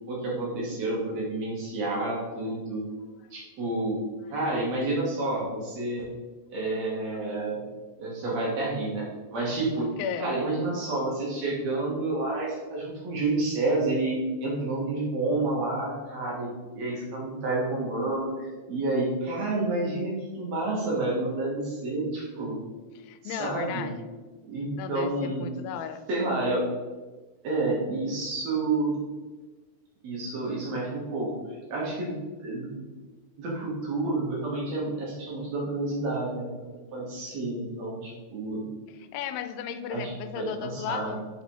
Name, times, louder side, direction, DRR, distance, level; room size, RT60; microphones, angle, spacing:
voice 1, 0.0-2.9 3.3-4.0 4.3-6.1 6.5-7.6 8.0-9.1 9.3-9.9 10.2-22.6 23.2-23.9 24.5-25.5 26.1-26.7 27.4-29.0 30.0-32.8 33.4-36.7 36.9-38.6 39.9-41.1, right 2 dB, 60° right, -4 dB, 2.0 m, -29 dB
voice 2, 23.0-24.1 24.8-26.0 39.0-41.3, left 8 dB, 90° left, 10 dB, 2.4 m, -35 dB
5.6 x 4.1 x 4.6 m, 1.3 s
omnidirectional pair, 4.1 m